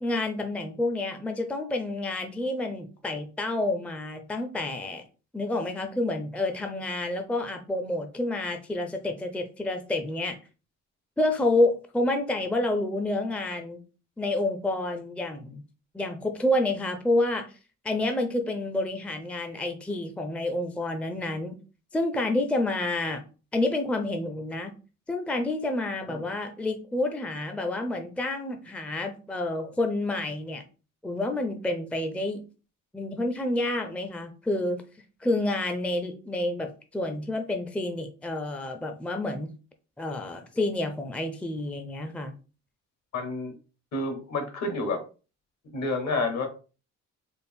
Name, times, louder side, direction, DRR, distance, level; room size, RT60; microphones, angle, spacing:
voice 1, 0.0-5.0 5.3-10.3 11.2-13.8 14.2-15.6 15.9-17.5 17.8-21.6 21.9-23.2 23.5-24.7 25.1-30.6 31.0-32.4 32.9-34.8 35.2-39.5 40.0-42.3, left 2 dB, 5° left, 6 dB, 0.5 m, -29 dB
voice 2, 43.1-43.5 43.9-45.0 45.6-46.5, left 2 dB, 65° left, 6 dB, 1.3 m, -29 dB
4.3 x 2.0 x 3.5 m, 0.34 s
cardioid pair, 90°, 30 cm